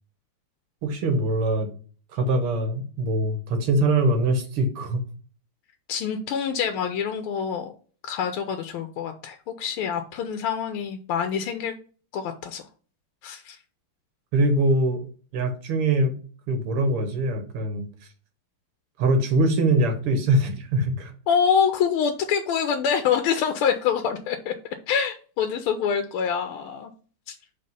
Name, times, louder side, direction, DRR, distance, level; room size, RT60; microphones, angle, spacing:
voice 1, 0.8-1.7 2.1-5.0 14.3-15.0 15.3-16.1 16.5-17.9 19.0-21.1, right 2 dB, 80° right, 6 dB, 2.1 m, -23 dB
voice 2, 5.9-7.7 8.0-11.7 12.1-12.6 13.2-13.6 21.3-24.5 24.9-26.9 27.3-27.4, left 7 dB, 85° left, 6 dB, 1.5 m, -25 dB
5.3 x 3.6 x 5.4 m, 0.41 s
omnidirectional pair, 2.4 m